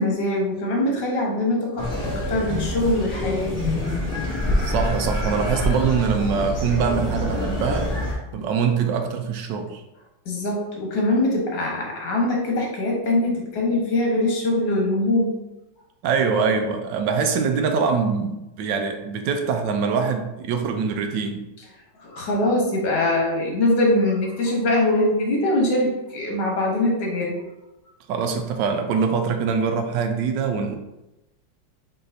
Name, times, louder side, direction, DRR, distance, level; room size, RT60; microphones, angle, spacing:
voice 1, 0.0-3.6 10.2-15.4 22.0-27.4, left 1 dB, 70° left, -2 dB, 1.8 m, -22 dB
sound 1, 1.8-8.1, left 1 dB, 30° left, 1.3 m, -26 dB
voice 2, 4.6-8.0 8.3-9.8 16.0-21.4 28.1-30.8, right 5 dB, 75° right, 5 dB, 1.2 m, -23 dB
4.6 x 4.0 x 2.6 m, 0.97 s
omnidirectional pair, 2.0 m